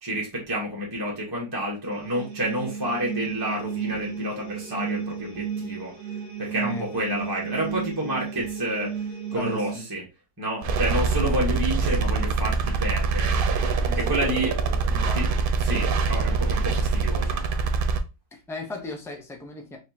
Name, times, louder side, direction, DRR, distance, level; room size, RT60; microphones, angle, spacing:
voice 1, 0.0-10.0 10.4-13.4 13.9-14.6 15.1-15.3 15.6-17.4, right 1 dB, 15° right, -3 dB, 1.0 m, -29 dB
sound 1, 1.9-9.8, right 7 dB, 50° right, 1.2 m, -33 dB
voice 2, 9.3-9.8 10.7-10.8 13.9-14.1 14.7-15.7 18.3-19.8, left 2 dB, 5° left, 2 dB, 0.5 m, -37 dB
sound 2, 10.6-18.0, right 4 dB, 85° right, 0.4 m, -24 dB
4.5 x 3.2 x 2.8 m, 0.27 s
omnidirectional pair, 1.6 m